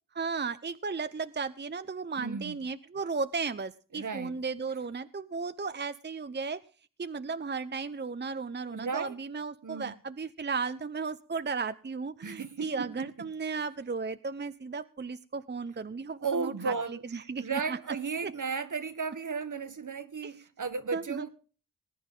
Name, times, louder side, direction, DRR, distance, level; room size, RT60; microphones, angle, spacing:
voice 1, 0.1-6.6 7.0-17.8 18.2-18.3 20.2-20.3 20.9-21.3, right 4 dB, 30° right, 0.7 m, -35 dB
voice 2, 2.2-2.6 3.9-4.4 8.7-9.1 9.6-9.9 12.2-12.9 13.2-13.3 16.2-21.3, right 5 dB, 60° right, 1.5 m, -35 dB
20.0 x 9.4 x 3.8 m
wide cardioid pair, 65°, 34 cm